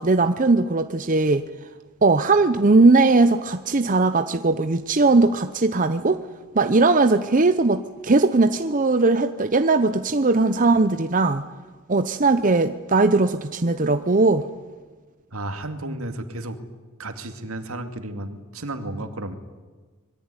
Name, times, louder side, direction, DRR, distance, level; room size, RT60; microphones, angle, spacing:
voice 1, 0.0-1.4 2.0-6.2 6.5-11.4 11.9-14.5, right 3 dB, 35° right, 9 dB, 0.8 m, -19 dB
voice 2, 15.3-16.6 17.0-19.4, right 1 dB, 75° right, 7 dB, 2.5 m, -33 dB
25.0 x 22.0 x 9.8 m, 1.4 s
head